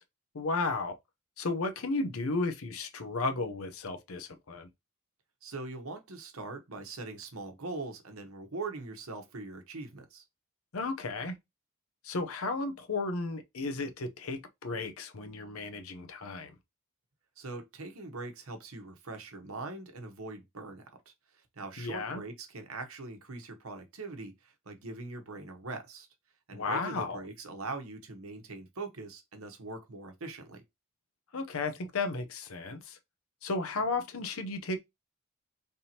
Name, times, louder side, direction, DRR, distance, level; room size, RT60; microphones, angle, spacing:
voice 1, 0.3-1.0 1.4-4.7 10.7-11.3 12.0-16.5 21.8-22.2 26.5-27.2 31.3-33.0 33.4-34.8, left 3 dB, 75° left, 0.7 m, -34 dB
voice 2, 5.4-10.2 17.4-20.9 21.3-26.1 26.5-30.6, right 3 dB, 80° right, 1.0 m, -42 dB
3.5 x 2.8 x 4.2 m
head